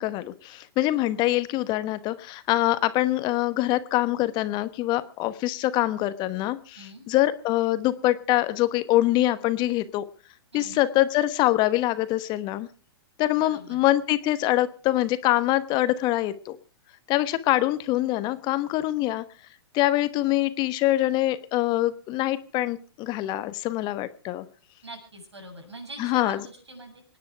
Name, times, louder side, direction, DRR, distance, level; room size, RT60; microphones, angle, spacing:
voice 1, 0.0-10.0 10.5-12.7 13.2-16.6 17.1-19.2 19.7-24.5 26.0-26.4, left 16 dB, 30° left, 13 dB, 1.1 m, -24 dB
voice 2, 10.5-10.9 13.4-13.8 24.8-27.0, right 1 dB, 90° right, 2 dB, 7.6 m, -43 dB
26.0 x 10.0 x 4.6 m, 0.38 s
hypercardioid pair, 115°, 14 cm